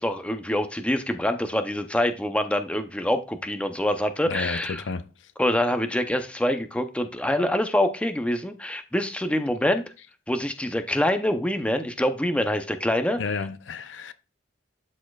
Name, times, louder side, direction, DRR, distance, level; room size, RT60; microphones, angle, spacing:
voice 1, 0.0-4.8 5.4-9.8 10.3-13.2, left 1 dB, 5° left, 0.5 m, -25 dB
voice 2, 4.3-5.1 13.2-14.1, left 4 dB, 80° left, 0.5 m, -31 dB
12.0 x 4.2 x 2.3 m
head